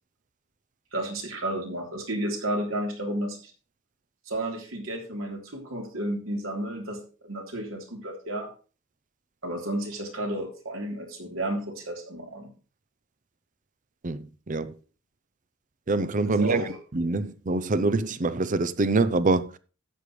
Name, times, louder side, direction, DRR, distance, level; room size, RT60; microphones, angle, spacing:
voice 1, 0.9-3.5 4.3-8.5 9.4-12.5 16.2-16.7, right 1 dB, 75° right, 3.4 m, -32 dB
voice 2, 14.0-14.7 15.9-16.6 16.9-19.5, right 3 dB, 40° right, 0.6 m, -25 dB
12.5 x 8.5 x 3.2 m
head